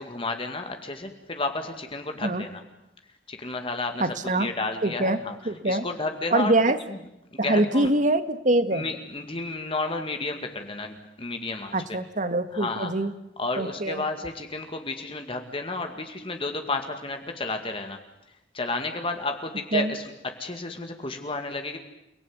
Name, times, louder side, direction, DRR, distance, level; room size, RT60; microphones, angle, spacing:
voice 1, 0.0-2.6 3.3-5.4 5.6-6.6 6.9-7.0 7.3-7.9 8.7-11.7 12.5-12.9 13.4-18.0 18.5-21.8, left 3 dB, 30° left, 5 dB, 2.2 m, -32 dB
voice 2, 4.0-4.5 4.8-5.2 5.5-5.9 6.3-6.8 7.4-8.9 11.7-13.1 13.6-14.0 19.7-19.9, right 2 dB, 45° right, 11 dB, 1.7 m, -24 dB
29.5 x 18.5 x 9.6 m, 0.87 s
head